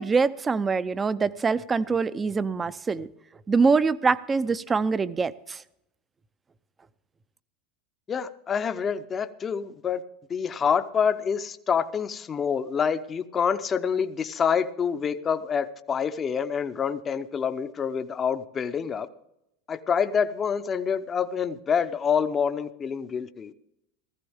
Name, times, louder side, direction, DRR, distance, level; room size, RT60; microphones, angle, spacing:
voice 1, 0.0-3.1 3.5-5.6, right 4 dB, 20° right, 16 dB, 0.6 m, -24 dB
voice 2, 8.1-10.0 10.3-19.1 19.7-23.5, left 7 dB, 25° left, 10 dB, 0.7 m, -27 dB
16.5 x 14.0 x 3.6 m, 0.81 s
supercardioid pair, 125°, 0 cm